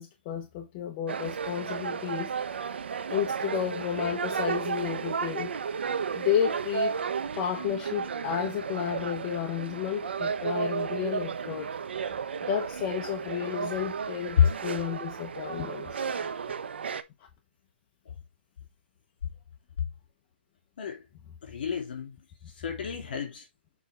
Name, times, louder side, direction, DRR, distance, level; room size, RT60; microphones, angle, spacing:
voice 1, 0.0-2.3 3.1-5.5 6.1-7.0 7.4-11.7 12.4-16.0, left 9 dB, 25° left, 0.8 m, -32 dB
sound 1, 1.1-17.0, right 6 dB, 70° right, 0.8 m, -33 dB
voice 2, 21.4-22.2 22.6-23.4, left 8 dB, 55° left, 2.8 m, -27 dB
7.1 x 4.4 x 3.4 m
hypercardioid pair, 165°, 6 cm